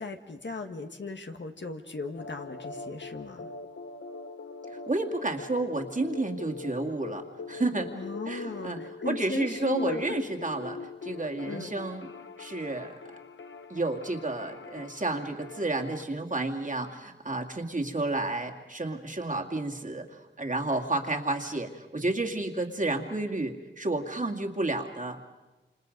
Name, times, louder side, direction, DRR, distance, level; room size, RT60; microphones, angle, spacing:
voice 1, 0.0-3.5 7.9-10.2 11.4-11.8, left 3 dB, 70° left, 5 dB, 1.7 m, -37 dB
sound 1, 2.2-16.0, left 4 dB, 90° left, 0.7 m, -42 dB
voice 2, 4.7-7.9 8.3-12.1 12.4-12.9 13.7-25.2, right 2 dB, 40° right, 2 dB, 2.2 m, -31 dB
29.0 x 27.0 x 5.3 m, 1.1 s
wide cardioid pair, 75°, 19 cm